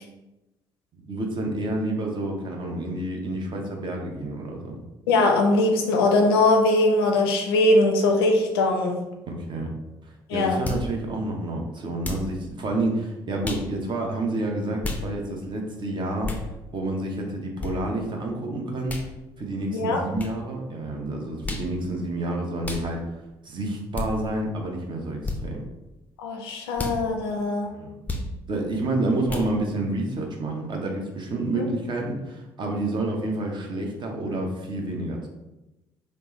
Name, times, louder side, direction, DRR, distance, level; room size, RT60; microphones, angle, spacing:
voice 1, 0.9-4.8 9.2-9.7 10.3-16.4 16.7-19.0 19.4-23.0 23.4-25.6 27.7-27.9 28.5-35.3, right 2 dB, 40° right, 0 dB, 0.7 m, -29 dB
voice 2, 5.1-9.0 10.3-10.6 19.7-20.0 26.2-27.7 31.5-31.6, left 2 dB, 75° left, 3 dB, 0.5 m, -21 dB
sound 1, 10.6-10.9 12.0-12.3 13.4-13.7 14.8-15.0 16.2-16.5 17.6-17.7 18.9-19.1 20.2-20.3 21.4-21.7 22.6-22.9 23.9-24.1 25.2-25.4 26.7-27.0 28.1-28.3 29.3-29.5, left 2 dB, 10° left, 0.5 m, -31 dB
3.3 x 2.0 x 3.1 m, 0.99 s
figure-of-eight pair, 50°, 13 cm